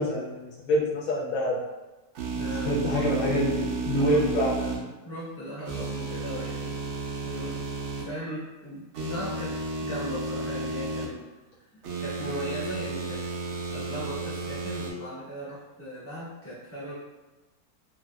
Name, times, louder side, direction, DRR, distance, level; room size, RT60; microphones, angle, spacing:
voice 1, 0.0-1.6 2.6-4.5, equal, 70° left, -4 dB, 1.0 m, -26 dB
sound 1, 2.2-4.8 5.7-8.0 8.9-11.1 11.8-14.9, right 3 dB, 70° right, 0.7 m, -32 dB
voice 2, 2.3-3.3 3.9-4.2 4.6-6.8 7.2-7.6 8.0-11.2 11.6-11.7 12.0-13.2 13.7-16.9, equal, 10° left, -9 dB, 0.7 m, -38 dB
2.8 x 2.6 x 2.2 m, 1.1 s
omnidirectional pair, 1.7 m